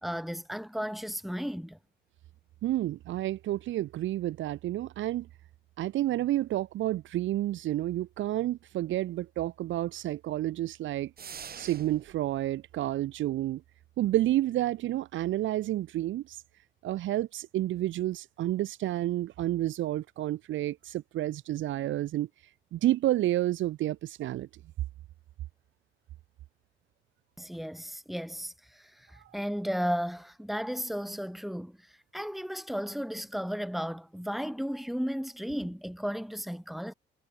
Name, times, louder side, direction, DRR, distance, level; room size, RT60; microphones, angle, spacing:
voice 1, 0.0-1.8 27.4-28.5 29.3-31.8 32.1-36.9, equal, ahead, 2.8 m, -34 dB
voice 2, 2.6-5.3 5.8-11.1 11.6-13.6 14.0-16.4 16.8-22.3 22.7-24.5, right 14 dB, 75° right, 0.8 m, -30 dB
sound 1, 11.2-12.2, right 7 dB, 50° right, 4.7 m, -44 dB
cardioid pair, 90°, 20 cm